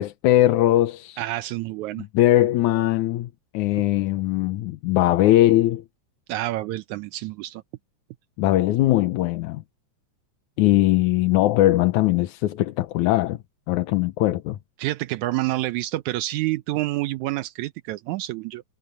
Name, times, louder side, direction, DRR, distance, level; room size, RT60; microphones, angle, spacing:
voice 1, 0.0-1.2 2.0-5.8 8.4-9.6 10.6-13.4 13.7-14.6, left 15 dB, 90° left, 2.3 m, -20 dB
voice 2, 1.2-2.1 6.3-7.6 14.8-18.6, right 17 dB, 85° right, 2.1 m, -28 dB
omnidirectional pair, 3.3 m